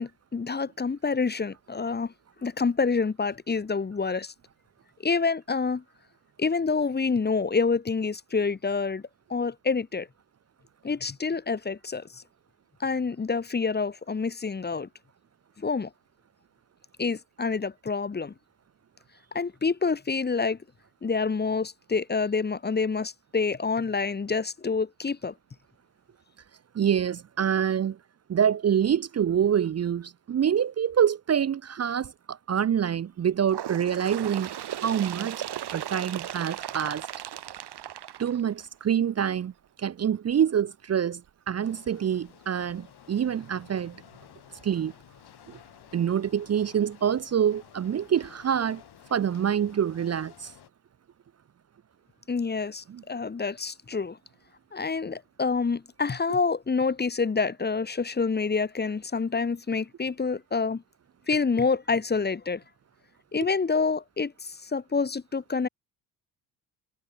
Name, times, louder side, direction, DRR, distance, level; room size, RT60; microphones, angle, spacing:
voice 1, 0.0-2.1 2.4-4.3 5.0-5.8 6.4-9.0 9.3-10.1 10.8-12.2 12.8-14.9 15.6-15.9 17.0-18.3 19.3-20.6 21.0-25.3 52.3-54.2 54.7-60.8 61.3-62.6 63.3-65.7, left 4 dB, 20° left, 1.2 m, -27 dB
voice 2, 26.7-28.0 28.3-34.5 34.8-35.4 35.7-37.1 38.2-39.5 39.8-41.2 41.5-44.0 44.6-44.9 45.5-45.6 45.9-48.8 49.1-50.5 52.9-53.0, right 8 dB, 35° right, 0.7 m, -26 dB
Bird, 33.5-38.9 39.8-39.9 40.3-40.4 41.3-41.4 42.3-42.4 43.3-43.4, right 11 dB, 60° right, 4.3 m, -37 dB
sound 1, 41.6-50.7, left 11 dB, 60° left, 4.2 m, -53 dB
supercardioid pair, 70°, 44 cm